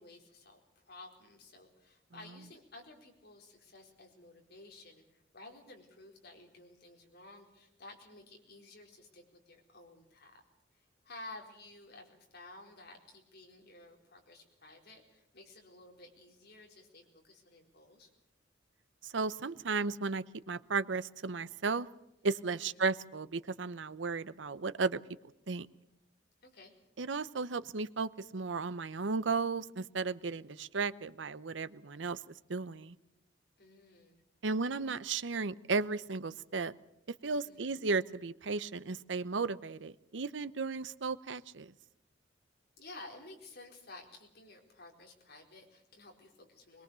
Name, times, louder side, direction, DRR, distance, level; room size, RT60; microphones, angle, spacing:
voice 1, 0.0-10.4 10.7-18.1 22.5-22.8 26.4-26.7 33.6-34.2 37.5-37.7 42.8-46.8, left 2 dB, 60° left, 1 dB, 4.3 m, -53 dB
voice 2, 19.0-21.9 22.2-25.0 25.5-25.7 27.0-33.0 34.4-36.7 37.2-41.7, right 4 dB, 75° right, 15 dB, 0.8 m, -35 dB
22.0 x 21.5 x 6.9 m, 0.87 s
head